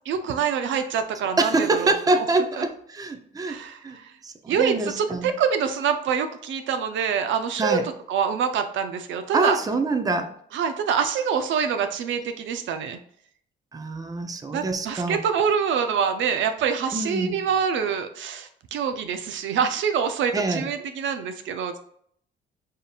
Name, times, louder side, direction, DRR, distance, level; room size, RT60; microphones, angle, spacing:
voice 1, 0.1-1.9 2.6-2.7 3.5-4.1 4.5-7.8 8.1-9.6 10.5-13.0 14.5-21.8, right 7 dB, 75° right, 7 dB, 0.5 m, -25 dB
voice 2, 1.4-3.6 3.8-5.3 7.6-7.9 9.3-10.3 13.7-15.2 16.9-17.3 20.3-20.7, right 3 dB, 20° right, 6 dB, 0.5 m, -25 dB
5.0 x 2.7 x 2.4 m, 0.65 s
cardioid pair, 90°, 20 cm